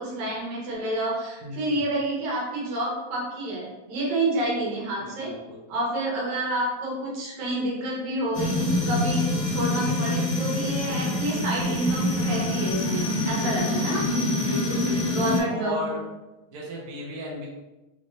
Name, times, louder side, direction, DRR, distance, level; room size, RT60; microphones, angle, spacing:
voice 1, 0.0-5.3 5.7-14.0 15.1-16.0, right 1 dB, 75° right, -4 dB, 2.5 m, -29 dB
voice 2, 5.0-5.6 14.4-14.9 15.5-16.0 16.5-17.5, equal, 60° right, -4 dB, 1.6 m, -35 dB
sound 1, 8.3-15.4, left 1 dB, 70° left, 0.5 m, -26 dB
4.9 x 3.7 x 2.6 m, 1.0 s
omnidirectional pair, 3.3 m